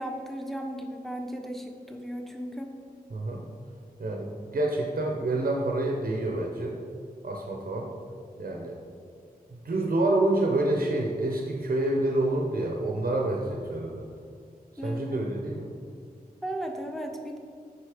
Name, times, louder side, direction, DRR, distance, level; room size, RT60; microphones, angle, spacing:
voice 1, 0.0-2.7 14.8-15.2 16.4-17.4, equal, ahead, 3 dB, 1.0 m, -35 dB
voice 2, 3.1-3.4 4.0-6.7 7.2-7.9 8.4-8.7 9.6-14.1 14.8-15.7, right 2 dB, 70° right, 0 dB, 0.9 m, -27 dB
8.4 x 5.2 x 5.1 m, 2.2 s
wide cardioid pair, 75°, 16 cm